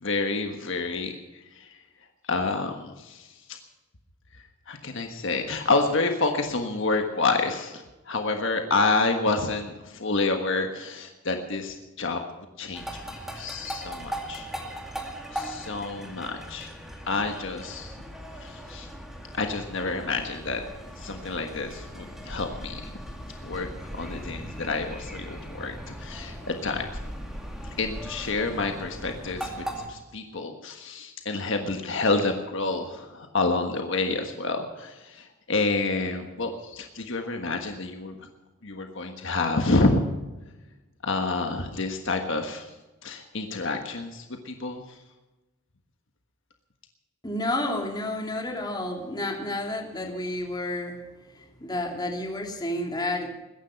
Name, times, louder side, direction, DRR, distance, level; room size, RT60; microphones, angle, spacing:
voice 1, 0.0-1.7 2.2-3.6 4.7-12.2 12.6-12.9 13.3-14.5 15.3-16.7 17.1-18.0 18.4-18.9 19.3-20.6 21.0-22.8 23.4-26.8 27.6-38.2 38.6-40.0 41.0-42.7 43.0-44.8, left 3 dB, 60° left, 4 dB, 1.5 m, -28 dB
sound 1, 12.7-29.9, equal, ahead, 2.3 m, -39 dB
voice 2, 47.2-51.0 51.3-53.3, left 1 dB, 20° left, 1 dB, 2.8 m, -30 dB
21.5 x 10.5 x 5.8 m, 1.1 s
head